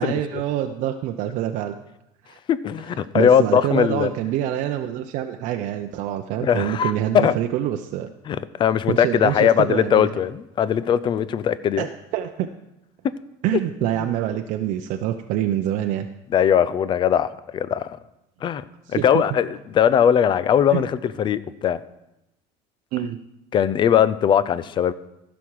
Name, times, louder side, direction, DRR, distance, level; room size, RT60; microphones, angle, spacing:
voice 1, 0.0-1.7 2.2-2.4 3.1-8.1 8.9-10.1 11.8-12.5 13.4-16.1 18.9-19.2 20.7-20.8 22.9-23.2, right 12 dB, 65° right, 5 dB, 0.6 m, -26 dB
voice 2, 2.5-4.1 6.4-7.3 8.3-11.9 14.0-14.1 16.3-18.0 18.4-18.6 18.9-21.8 23.5-24.9, left 9 dB, 35° left, 16 dB, 0.5 m, -20 dB
15.0 x 6.2 x 4.7 m, 0.88 s
cardioid pair, 125°, 14 cm